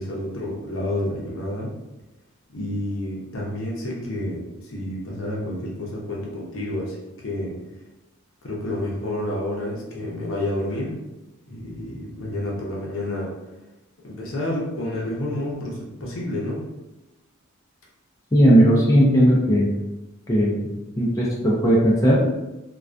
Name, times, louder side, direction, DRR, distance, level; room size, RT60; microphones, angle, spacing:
voice 1, 0.0-1.7 2.5-7.0 7.2-7.6 8.4-10.9 11.5-13.3 14.0-16.6, left 1 dB, 65° left, -3 dB, 0.6 m, -29 dB
voice 2, 18.3-19.7 20.3-20.5 21.0-22.2, equal, 15° left, -5 dB, 0.4 m, -17 dB
2.2 x 2.2 x 2.5 m, 0.99 s
head